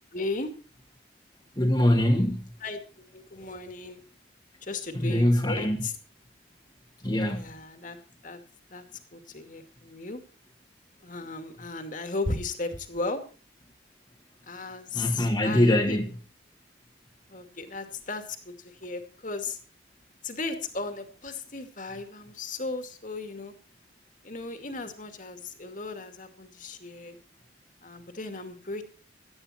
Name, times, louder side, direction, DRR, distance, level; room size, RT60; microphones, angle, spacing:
voice 1, 0.1-0.5 2.6-2.8 3.1-4.0 4.6-5.9 7.3-8.0 8.2-8.4 8.7-8.8 9.1-10.2 11.0-13.2 14.5-16.0 17.3-19.6 20.2-23.5 24.2-27.2 27.8-28.8, left 3 dB, 45° left, 7 dB, 2.4 m, -35 dB
voice 2, 1.6-2.5 4.9-5.8 7.0-7.5 14.9-16.1, left 1 dB, 20° left, 0 dB, 1.8 m, -23 dB
17.5 x 12.5 x 4.4 m, 0.37 s
head